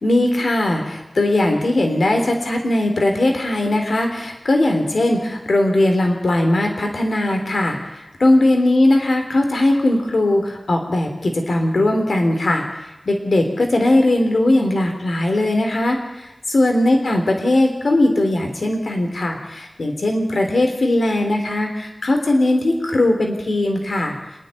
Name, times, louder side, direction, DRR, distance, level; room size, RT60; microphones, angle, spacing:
voice 1, 0.0-12.6 13.1-24.2, left 1 dB, 90° left, 3 dB, 3.5 m, -19 dB
26.0 x 10.5 x 9.8 m, 1.0 s
wide cardioid pair, 65°, 0 cm